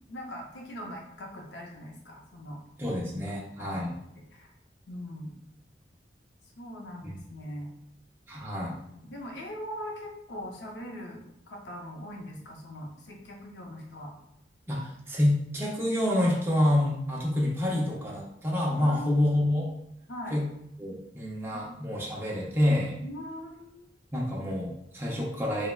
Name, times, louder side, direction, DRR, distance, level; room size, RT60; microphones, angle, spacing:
voice 1, 0.1-2.6 3.6-4.5 4.9-5.5 6.6-7.7 8.9-14.1 18.8-19.6 20.1-20.4 21.5-22.1 23.0-23.9, equal, 80° left, 0 dB, 0.6 m, -41 dB
voice 2, 2.8-3.9 7.0-7.1 8.3-8.7 14.7-19.6 20.3-20.4 20.8-23.0 24.1-25.7, left 1 dB, 15° right, -4 dB, 0.5 m, -27 dB
3.2 x 2.1 x 2.3 m, 0.77 s
head